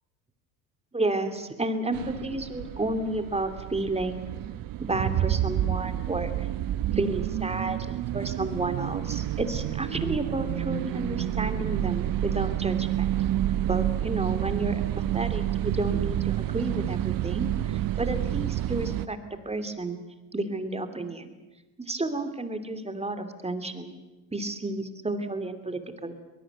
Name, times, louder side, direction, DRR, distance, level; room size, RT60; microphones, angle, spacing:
voice 1, 0.9-4.2 4.8-6.5 6.9-13.1 13.7-19.2 19.4-20.0 20.3-21.3 21.8-23.9 24.3-26.1, right 2 dB, 15° right, 8 dB, 2.8 m, -31 dB
sound 1, 1.9-19.1, right 12 dB, 45° right, 1.1 m, -29 dB
22.5 x 20.5 x 8.1 m, 1.1 s
hypercardioid pair, 75°, 46 cm